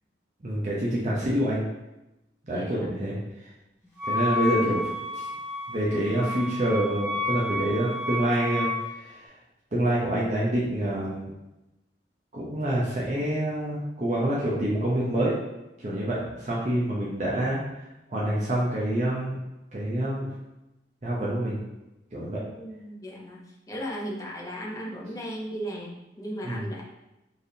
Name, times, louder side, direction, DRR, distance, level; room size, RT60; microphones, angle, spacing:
voice 1, 0.4-1.6 2.4-3.2 4.1-5.3 5.7-9.2 9.7-11.3 12.3-15.3 15.8-17.6 18.1-19.4 19.7-20.3 21.0-21.6 22.1-22.4 26.4-26.6, right 1 dB, 40° right, -6 dB, 0.7 m, -27 dB
voice 2, 2.5-3.0 22.5-26.8, equal, 20° left, -2 dB, 0.6 m, -36 dB
Wind instrument woodwind instrument, 4.0-8.9, left 2 dB, 40° left, 1.1 m, -31 dB
4.3 x 3.4 x 2.7 m, 0.95 s
head